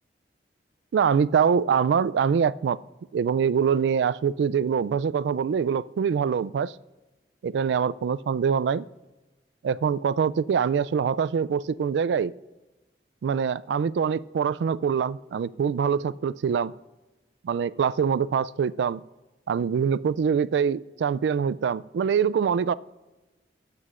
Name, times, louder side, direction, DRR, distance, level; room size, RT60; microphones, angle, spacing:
voice 1, 0.9-2.8 3.1-6.7 7.4-8.8 9.6-12.3 13.2-16.7 17.4-19.0 19.5-22.7, right 7 dB, 80° right, 18 dB, 0.3 m, -24 dB
23.0 x 8.4 x 2.5 m, 1.1 s
head